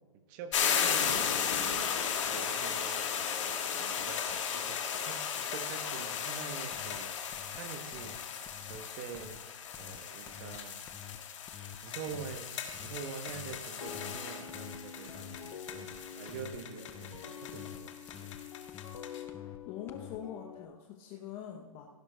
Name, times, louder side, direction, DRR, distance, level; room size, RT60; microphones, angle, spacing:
voice 1, 0.3-2.0 2.3-3.1 3.7-7.1 7.5-8.2 8.6-9.4 9.8-10.8 11.8-12.5 12.8-18.3, right 6 dB, 35° right, 8 dB, 0.9 m, -45 dB
sound 1, 0.5-19.2, left 7 dB, 55° left, 1.4 m, -35 dB
sound 2, 6.7-7.0 7.3-7.6 7.9-8.2 8.4-8.8 9.1-9.4 9.7-10.0 10.2-10.6 10.8-11.2 11.5-11.8 12.1-12.4 12.7-13.0 13.3-13.6 13.9-14.2 14.5-14.8 15.1-15.4 15.7-16.0 16.3-16.6 16.9-17.2 17.5-17.8 18.1-18.4 18.7-19.0 19.3-19.6 19.9-20.2, left 10 dB, 15° left, 0.3 m, -49 dB
sound 3, 13.8-20.7, left 8 dB, 80° left, 0.8 m, -47 dB
voice 2, 19.4-21.9, left 9 dB, 30° left, 1 dB, 0.7 m, -44 dB
16.0 x 10.5 x 2.2 m, 1.4 s
hypercardioid pair, 145°, 18 cm